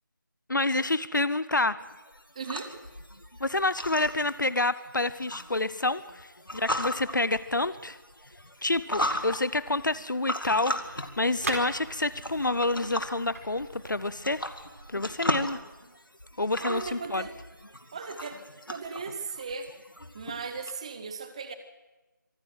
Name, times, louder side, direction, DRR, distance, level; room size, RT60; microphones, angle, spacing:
voice 1, 0.5-1.8 3.4-8.0 8.6-14.4 14.9-15.6 16.4-17.3, left 2 dB, 65° left, 16 dB, 0.8 m, -28 dB
sound 1, 1.8-20.7, left 1 dB, 90° left, 2.3 m, -37 dB
voice 2, 2.3-2.7 16.6-17.3 17.9-18.4 18.7-19.7 20.1-21.5, right 5 dB, 20° right, 9 dB, 0.9 m, -37 dB
sound 2, 10.4-15.5, right 2 dB, 45° right, 4.4 m, -41 dB
25.0 x 13.5 x 8.0 m, 1.1 s
figure-of-eight pair, 165°, 11 cm